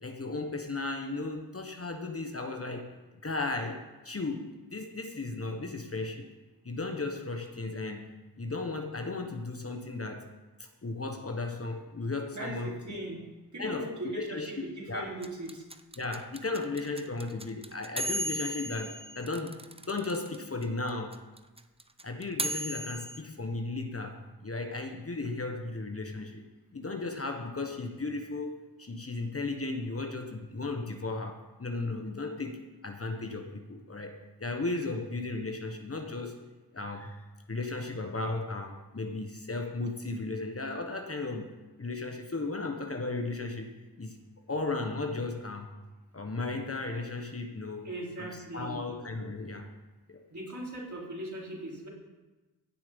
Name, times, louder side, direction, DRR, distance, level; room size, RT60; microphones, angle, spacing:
voice 1, 0.0-2.9 3.2-6.3 6.6-8.1 8.4-10.3 10.6-13.0 13.6-14.5 14.9-15.1 16.0-19.6 19.9-21.2 22.0-26.4 26.7-36.4 36.7-37.2 37.5-41.5 41.8-43.7 44.0-44.2 44.5-45.7 46.1-47.9 48.2-49.7 50.1-50.2, left 3 dB, 35° left, 4 dB, 1.4 m, -35 dB
voice 2, 12.3-13.2 13.5-15.6 47.8-48.9 50.3-51.9, right 1 dB, 45° right, -3 dB, 4.4 m, -39 dB
sound 1, 15.2-20.4 20.6-20.7 20.9-23.2, right 1 dB, 15° right, 0.8 m, -35 dB
16.0 x 7.4 x 5.5 m, 1.2 s
cardioid pair, 50°, 42 cm